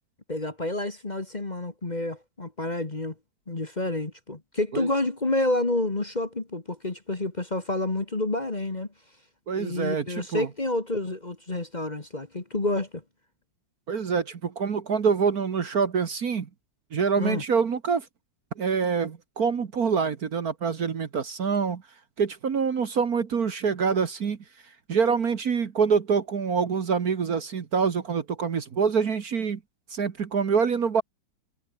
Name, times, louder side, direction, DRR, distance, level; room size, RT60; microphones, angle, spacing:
voice 1, 0.3-3.1 3.5-8.9 9.5-13.0 17.2-17.4, left 2 dB, 25° left, 1.7 m, -29 dB
voice 2, 9.5-10.5 13.9-16.5 16.9-18.1 18.6-21.8 22.2-24.4 24.9-29.6 29.9-31.0, right 6 dB, 50° right, 1.8 m, -25 dB
omnidirectional pair, 2.1 m